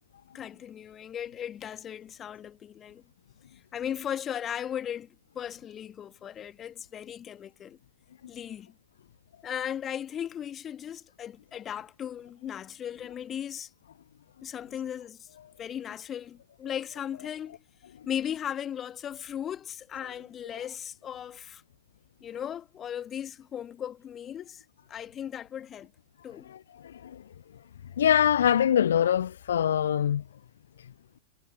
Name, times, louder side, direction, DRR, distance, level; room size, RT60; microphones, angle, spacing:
voice 1, 0.3-3.0 3.7-7.8 8.3-8.7 9.4-13.7 14.4-15.3 15.6-17.6 18.1-21.6 22.2-25.9 26.2-26.5, left 9 dB, 25° left, 1.9 m, -37 dB
voice 2, 26.8-27.2 28.0-30.2, left 9 dB, 65° left, 0.4 m, -23 dB
figure-of-eight pair, 90°, 0 cm